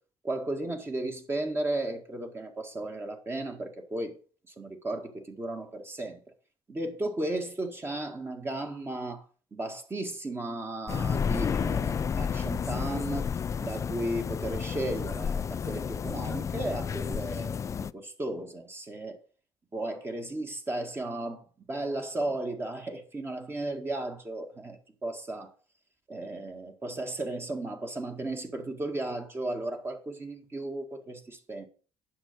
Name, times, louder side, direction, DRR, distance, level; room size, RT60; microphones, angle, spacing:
voice 1, 0.2-4.2 4.5-6.2 6.7-9.2 9.5-13.3 13.6-19.2 19.7-25.6 26.1-31.7, right 2 dB, 25° right, 1.8 m, -35 dB
sound 1, 10.9-17.9, left 7 dB, 30° left, 0.4 m, -31 dB
9.8 x 6.6 x 5.3 m
cardioid pair, 110°, 10 cm